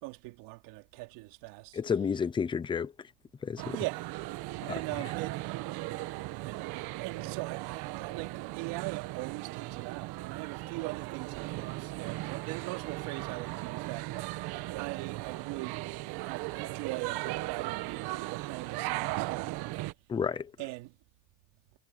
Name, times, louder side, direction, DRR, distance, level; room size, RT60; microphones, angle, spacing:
voice 1, 0.0-1.8 3.7-4.1 4.6-5.4 6.5-6.6 7.0-14.4 14.7-19.7 20.6-21.0, right 22 dB, 75° right, 3.0 m, -41 dB
voice 2, 1.7-2.9 3.4-3.8 4.6-4.7 20.1-20.5, left 6 dB, 10° left, 0.4 m, -31 dB
sound 1, 3.6-19.9, right 18 dB, 55° right, 1.1 m, -37 dB
cardioid pair, 160°, 45 cm